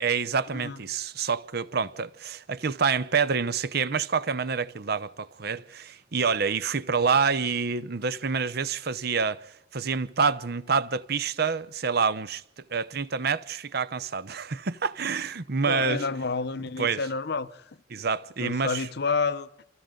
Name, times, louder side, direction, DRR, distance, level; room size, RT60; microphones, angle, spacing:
voice 1, 0.0-16.0 16.8-17.0 17.9-18.9, right 5 dB, 55° right, 0.8 m, -27 dB
voice 2, 15.7-17.6 18.4-19.5, left 4 dB, 60° left, 0.9 m, -29 dB
28.5 x 26.0 x 3.9 m
head